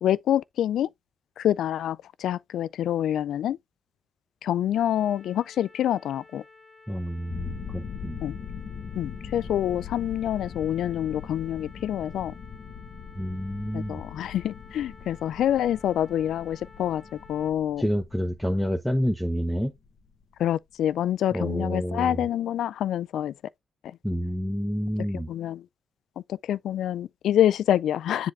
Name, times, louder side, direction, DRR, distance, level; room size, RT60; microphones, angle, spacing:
voice 1, 0.0-0.9 1.4-3.6 4.4-6.4 8.2-8.4 9.0-12.3 13.7-17.0 17.3-17.8 20.4-23.3 25.1-25.6 26.3-28.3, left 11 dB, 75° left, 0.3 m, -26 dB
sound 1, 4.7-17.5, left 4 dB, 25° left, 1.7 m, -53 dB
voice 2, 6.9-8.2 13.2-14.0 17.8-19.7 21.3-22.3 24.0-25.3, equal, ahead, 0.8 m, -28 dB
sound 2, 7.3-20.4, left 7 dB, 50° left, 1.2 m, -41 dB
7.6 x 3.9 x 3.3 m
cardioid pair, 90°, 0 cm